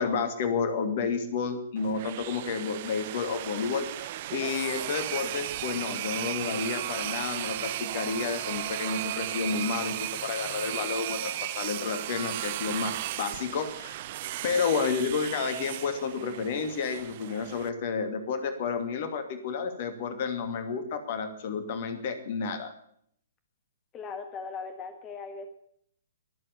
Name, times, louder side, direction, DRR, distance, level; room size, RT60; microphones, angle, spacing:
voice 1, 0.0-14.0 14.4-22.7, left 5 dB, 45° left, 9 dB, 2.6 m, -31 dB
sound 1, 1.8-17.7, right 14 dB, 45° right, 0.8 m, -35 dB
voice 2, 23.9-25.5, left 5 dB, 20° left, 7 dB, 1.7 m, -39 dB
22.5 x 7.9 x 7.1 m, 0.66 s
figure-of-eight pair, 120°, 0 cm